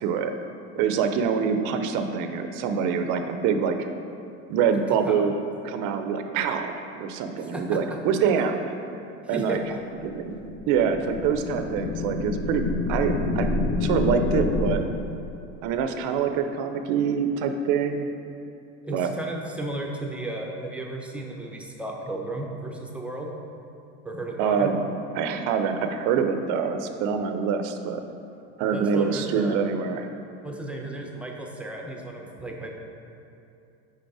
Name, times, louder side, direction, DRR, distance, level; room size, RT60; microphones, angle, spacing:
voice 1, 0.0-0.3 0.8-3.9 4.5-5.4 5.6-8.7 9.3-9.6 10.1-13.5 13.8-14.8 15.6-18.1 18.9-19.1 24.4-28.0 28.6-30.1, right 6 dB, 55° right, 7 dB, 0.5 m, -25 dB
voice 2, 7.4-7.8 9.2-9.8 18.8-23.3 24.0-24.7 28.7-29.7 30.4-32.7, right 1 dB, 5° right, 0 dB, 0.5 m, -34 dB
sound 1, 9.9-14.7, left 2 dB, 35° left, 0.6 m, -28 dB
5.2 x 4.1 x 4.7 m, 2.6 s
supercardioid pair, 115°, 36 cm